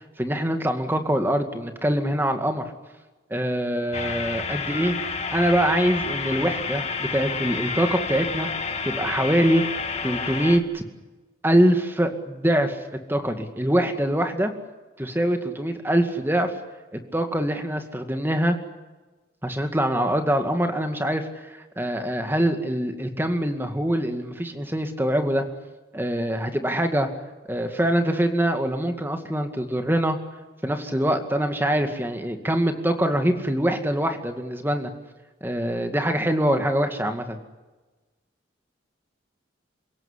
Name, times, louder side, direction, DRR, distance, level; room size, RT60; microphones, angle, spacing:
voice 1, 0.2-2.7 3.3-5.0 5.3-8.5 8.8-10.8 11.4-12.8 13.1-14.5 15.0-16.5 16.9-18.6 19.4-25.4 25.9-27.1 27.5-30.2 30.6-34.9 35.4-37.4, right 1 dB, 10° right, 6 dB, 2.2 m, -24 dB
sound 1, 3.9-10.6, left 5 dB, 35° left, 1.8 m, -30 dB
28.0 x 17.0 x 9.9 m, 1.2 s
head